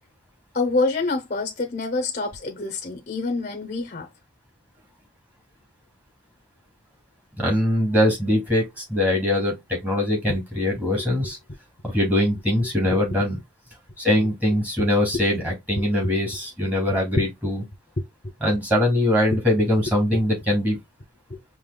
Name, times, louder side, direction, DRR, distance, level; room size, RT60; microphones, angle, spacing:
voice 1, 0.5-4.1 11.0-11.3 14.8-14.9 15.8-16.1 16.9-17.2 18.0-18.1 21.3-21.4, left 2 dB, 40° left, 0.8 m, -26 dB
voice 2, 7.4-11.4 11.8-13.4 14.0-17.6 18.4-20.8, left 1 dB, 10° right, 2.3 m, -22 dB
5.4 x 2.9 x 2.2 m
head